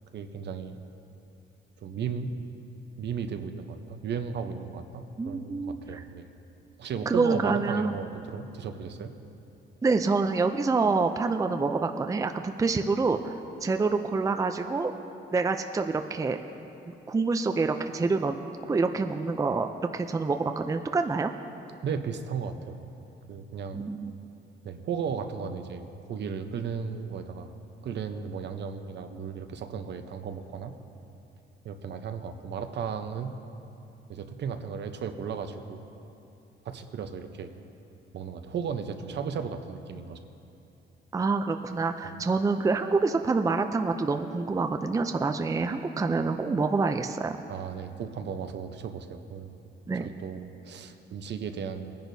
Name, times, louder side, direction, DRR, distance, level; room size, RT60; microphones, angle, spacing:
voice 1, 0.1-0.8 1.8-2.3 3.0-6.3 6.8-9.1 21.8-22.8 23.3-23.8 24.6-25.8 26.1-27.5 27.8-30.7 31.6-33.3 34.1-35.8 36.6-37.5 38.1-40.2 42.0-42.2 47.5-49.5 49.9-51.9, right 6 dB, 60° right, 7 dB, 0.8 m, -35 dB
voice 2, 5.2-6.0 7.1-7.9 9.8-13.3 13.6-14.9 15.3-16.4 16.9-18.4 18.7-21.3 23.7-24.1 41.1-47.4 49.9-50.1, right 4 dB, 15° right, 7 dB, 0.4 m, -27 dB
19.5 x 10.5 x 2.7 m, 2.8 s
cardioid pair, 90°, 20 cm